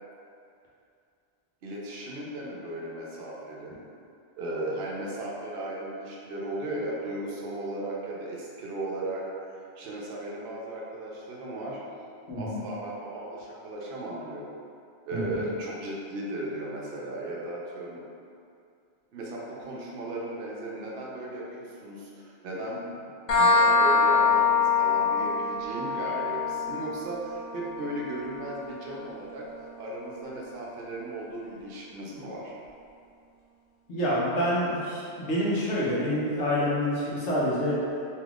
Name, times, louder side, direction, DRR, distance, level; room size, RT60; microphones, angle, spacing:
voice 1, 1.6-3.7 4.4-11.8 12.3-14.5 15.1-18.0 19.1-23.1 23.4-29.5 29.8-32.5, right 1 dB, 60° right, -4 dB, 0.8 m, -36 dB
voice 2, 12.3-12.6 15.1-15.4 33.9-37.8, equal, 80° left, -8 dB, 1.1 m, -27 dB
sound 1, 23.3-30.7, left 4 dB, 55° left, 0.7 m, -26 dB
3.4 x 2.9 x 2.4 m, 2.5 s
omnidirectional pair, 1.2 m